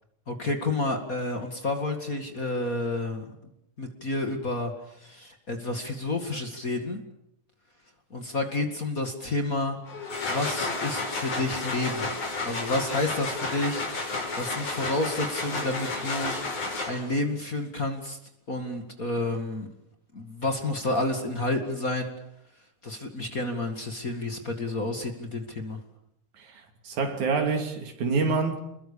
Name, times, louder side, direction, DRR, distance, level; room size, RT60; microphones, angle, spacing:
voice 1, 0.3-3.3 3.8-7.0 8.1-9.8 10.3-12.1 12.4-16.3 16.9-18.2 18.5-19.7 20.1-22.1 22.8-25.8, left 2 dB, 30° left, 2.2 m, -30 dB
sound 1, 9.9-17.2, left 3 dB, 80° left, 7.1 m, -31 dB
voice 2, 26.4-28.6, right 4 dB, 75° right, 4.3 m, -27 dB
28.0 x 21.5 x 7.0 m
omnidirectional pair, 3.4 m